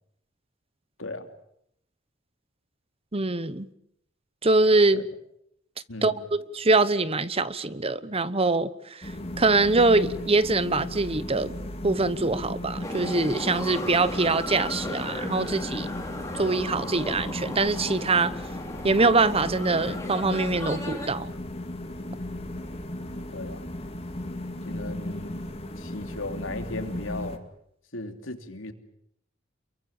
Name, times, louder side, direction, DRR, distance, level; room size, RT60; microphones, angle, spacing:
voice 1, 3.1-3.7 4.4-5.1 6.0-9.1 9.4-11.5 11.8-15.9 16.3-18.3 18.8-21.3, right 3 dB, 30° right, 1.0 m, -23 dB
sound 1, 9.0-27.4, left 1 dB, 30° left, 2.5 m, -36 dB
sound 2, 12.8-21.1, left 1 dB, 15° left, 4.4 m, -36 dB
voice 2, 24.6-25.5 25.8-27.4 27.9-28.7, left 2 dB, 85° left, 2.9 m, -36 dB
28.5 x 23.0 x 7.3 m
head